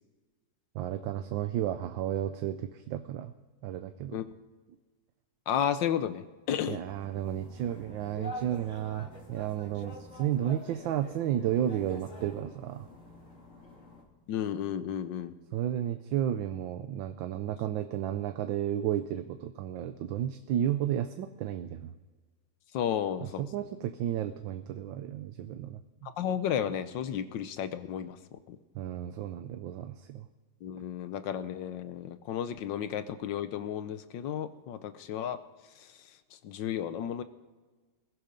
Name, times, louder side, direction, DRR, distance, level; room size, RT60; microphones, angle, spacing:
voice 1, 0.7-3.3 3.6-4.2 6.7-12.9 15.5-21.9 23.4-26.1 28.7-30.3, right 11 dB, 80° right, 9 dB, 1.4 m, -32 dB
voice 2, 5.5-6.8 14.3-15.3 22.7-23.5 26.0-28.6 30.6-35.4 35.8-37.2, left 9 dB, 75° left, 12 dB, 1.4 m, -33 dB
sound 1, 6.8-14.0, equal, 40° left, 2.6 m, -47 dB
20.5 x 13.0 x 5.2 m, 1.3 s
omnidirectional pair, 2.1 m